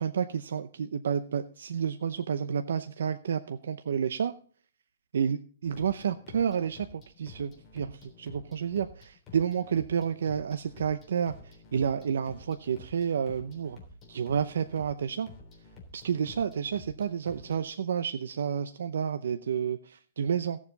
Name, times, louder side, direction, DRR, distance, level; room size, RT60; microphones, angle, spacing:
voice 1, 0.0-4.3 5.1-5.4 5.6-13.8 14.1-15.3 15.9-20.6, right 7 dB, 80° right, 9 dB, 0.7 m, -30 dB
sound 1, 5.6-17.7, left 3 dB, 15° left, 3.4 m, -51 dB
16.5 x 7.3 x 4.0 m, 0.44 s
hypercardioid pair, 160°, 0 cm